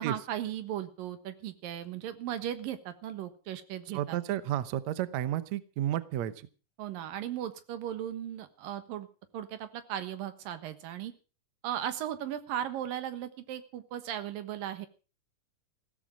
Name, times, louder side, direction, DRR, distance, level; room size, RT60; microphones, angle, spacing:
voice 1, 0.0-4.2 6.8-9.1 9.3-11.1 11.6-14.9, right 11 dB, 90° right, 10 dB, 3.1 m, -37 dB
voice 2, 3.9-6.5, right 12 dB, 65° right, 14 dB, 2.0 m, -32 dB
16.0 x 13.5 x 5.1 m, 0.36 s
omnidirectional pair, 3.9 m